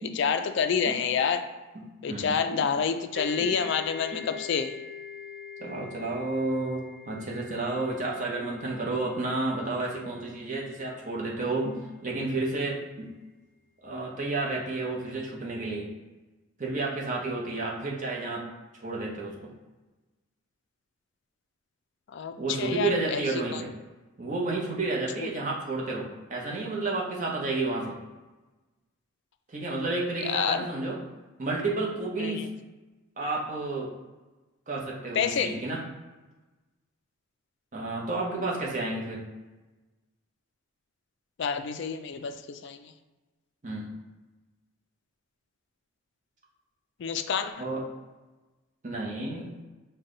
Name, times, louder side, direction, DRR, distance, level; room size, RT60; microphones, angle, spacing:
voice 1, 0.1-1.4 2.0-4.7 22.1-23.2 23.5-23.6 25.2-25.3 30.2-30.7 32.2-32.5 35.2-35.5 41.4-42.9 47.0-47.5, left 6 dB, 55° left, 8 dB, 0.3 m, -28 dB
voice 2, 1.7-2.6 3.4-3.5 4.1-4.2 5.6-13.1 13.8-15.9 16.6-18.5 18.7-19.3 22.4-23.7 24.2-28.0 29.5-31.0 31.4-32.5 33.2-33.9 34.7-35.8 37.7-39.2 43.6-43.9 47.6-47.8 48.8-49.5, right 2 dB, 35° right, -3 dB, 0.8 m, -31 dB
sound 1, 3.1-10.7, left 6 dB, 15° left, 1.3 m, -44 dB
5.4 x 2.2 x 3.8 m, 1.2 s
head